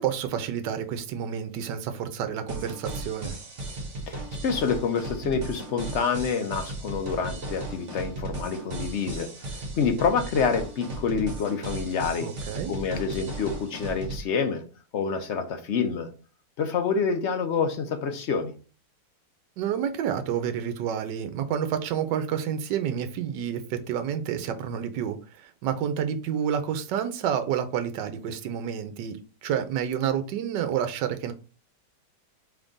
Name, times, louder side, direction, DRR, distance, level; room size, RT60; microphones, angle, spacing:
voice 1, 0.0-3.3 12.2-12.7 19.6-29.2 29.4-31.3, right 9 dB, 80° right, 1.3 m, -29 dB
sound 1, 2.5-14.2, right 2 dB, 45° right, 1.6 m, -36 dB
voice 2, 4.1-12.3 12.7-14.6 14.9-16.1 16.6-18.5, left 5 dB, 65° left, 0.7 m, -27 dB
3.6 x 3.4 x 3.8 m
omnidirectional pair, 1.9 m